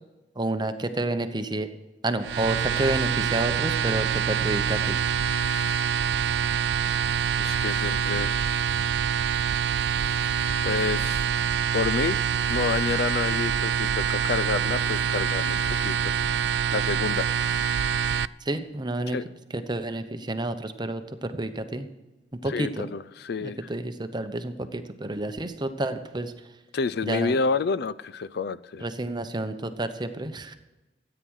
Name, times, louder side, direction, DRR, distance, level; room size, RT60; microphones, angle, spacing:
voice 1, 0.4-1.7 2.0-5.0 18.4-19.2 19.5-21.9 22.4-22.9 23.4-26.3 27.0-27.3 28.8-30.5, right 2 dB, 25° right, 9 dB, 0.8 m, -30 dB
sound 1, 2.2-18.3, right 7 dB, 70° right, 0.3 m, -25 dB
voice 2, 7.4-8.4 10.6-11.3 11.7-12.2 12.5-16.1 16.7-17.3 19.1-19.2 22.5-23.6 26.7-28.9, left 5 dB, 65° left, 17 dB, 0.4 m, -29 dB
13.5 x 9.2 x 6.3 m, 1.1 s
head